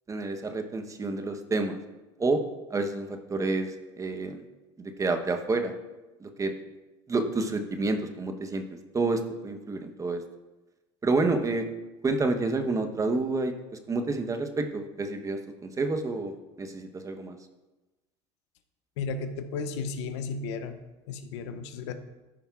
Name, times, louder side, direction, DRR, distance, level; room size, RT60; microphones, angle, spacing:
voice 1, 0.1-1.8 2.2-2.4 2.7-4.4 4.8-5.7 6.2-6.5 7.1-8.6 8.9-10.2 11.0-11.7 12.0-13.5 13.9-17.4, right 3 dB, 20° right, 6 dB, 0.9 m, -29 dB
voice 2, 19.0-20.8 21.1-21.9, left 4 dB, 80° left, 9 dB, 0.7 m, -34 dB
13.5 x 5.2 x 2.4 m, 1.1 s
hypercardioid pair, 85°, 15 cm